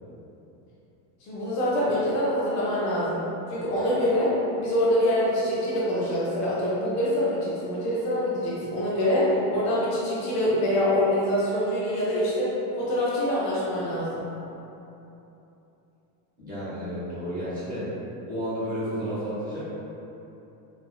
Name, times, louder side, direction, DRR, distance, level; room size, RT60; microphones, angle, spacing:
voice 1, 1.2-3.2 3.5-14.3, left 1 dB, 35° left, -7 dB, 0.5 m, -25 dB
voice 2, 16.4-17.9 18.3-19.6, equal, 15° right, -11 dB, 0.9 m, -31 dB
4.2 x 2.5 x 2.2 m, 3.0 s
cardioid pair, 175°, 49 cm